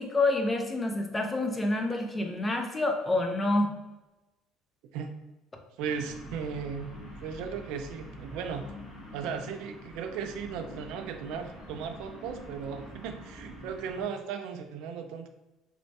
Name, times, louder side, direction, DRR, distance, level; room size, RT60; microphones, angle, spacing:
voice 1, 0.0-3.7, left 2 dB, 15° left, 3 dB, 0.3 m, -28 dB
sound 1, 5.8-14.0, equal, 45° left, 1.1 m, -46 dB
voice 2, 5.8-6.9 7.2-8.7 9.1-15.3, right 6 dB, 70° right, 6 dB, 0.3 m, -36 dB
3.2 x 2.0 x 2.7 m, 1.0 s
cardioid pair, 155°, 0 cm